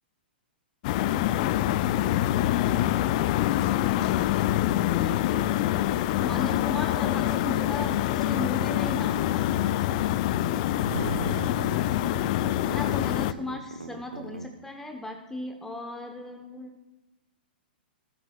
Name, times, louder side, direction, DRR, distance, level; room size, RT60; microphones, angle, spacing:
sound 1, 0.8-13.3, left 14 dB, 45° left, 0.4 m, -25 dB
sound 2, 1.0-14.4, right 4 dB, 90° right, 1.0 m, -41 dB
voice 1, 5.0-5.5 6.2-9.5 12.6-16.8, left 2 dB, 5° left, 4 dB, 1.0 m, -37 dB
Thunder, 10.9-13.1, right 6 dB, 70° right, 0.5 m, -38 dB
17.5 x 9.2 x 2.4 m, 1.1 s
hypercardioid pair, 115°, 6 cm